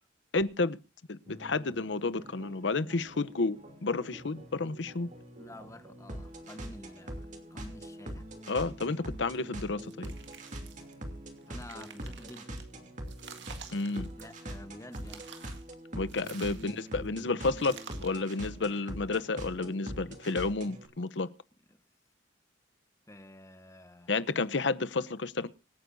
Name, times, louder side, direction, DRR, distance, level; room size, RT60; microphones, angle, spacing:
voice 1, 0.3-0.8 1.1-5.1 8.5-10.1 13.7-14.1 15.9-21.3 24.1-25.5, left 3 dB, 75° left, 0.8 m, -31 dB
sound 1, 1.3-20.9, right 1 dB, 45° right, 2.9 m, -44 dB
voice 2, 5.4-8.3 11.5-12.5 14.2-15.3 16.4-16.7 21.7-21.8 23.1-24.1, left 1 dB, 15° left, 1.1 m, -49 dB
sound 2, 9.9-10.9 11.4-12.6 13.1-14.6 14.9-15.7 16.1-17.0 17.6-18.3, right 7 dB, 70° right, 1.9 m, -50 dB
25.5 x 9.4 x 2.7 m
head